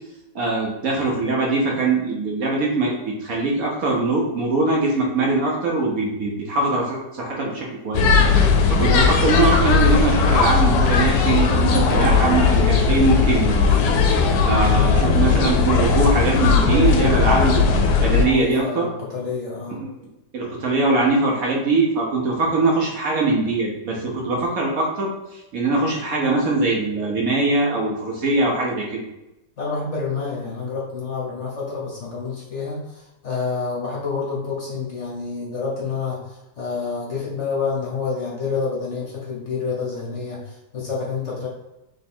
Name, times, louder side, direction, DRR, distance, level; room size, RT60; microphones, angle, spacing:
voice 1, 0.3-8.1 8.7-13.8 14.4-17.7 18.0-18.9 19.8-29.1, right 3 dB, 60° right, -2 dB, 1.1 m, -22 dB
sound 1, 7.9-18.3, left 4 dB, 70° left, 1.1 m, -17 dB
voice 2, 18.1-19.8 29.6-41.5, left 5 dB, 50° left, -4 dB, 1.1 m, -28 dB
3.3 x 3.1 x 4.3 m, 0.95 s
omnidirectional pair, 1.9 m